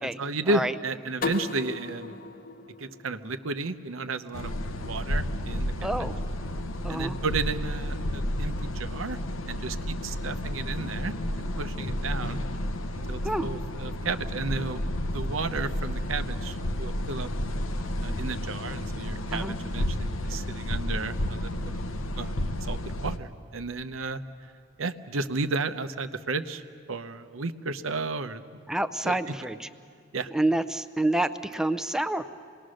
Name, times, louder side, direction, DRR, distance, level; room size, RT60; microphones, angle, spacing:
voice 1, 0.0-2.1 2.8-6.1 6.9-9.2 9.5-12.4 12.9-14.8 15.1-17.3 18.0-21.8 22.2-24.2 24.8-26.6 26.9-28.4 29.0-29.3 30.1-30.3, right 3 dB, 90° right, 10 dB, 0.8 m, -33 dB
sound 1, 1.2-4.0, left 4 dB, 45° left, 0.9 m, -36 dB
sound 2, 4.3-23.2, left 1 dB, 90° left, 1.0 m, -31 dB
voice 2, 5.8-6.1 6.8-7.2 13.2-13.5 19.3-19.5 28.7-29.7 30.3-32.3, right 1 dB, 5° right, 11 dB, 0.5 m, -28 dB
27.0 x 20.0 x 6.4 m, 2.2 s
head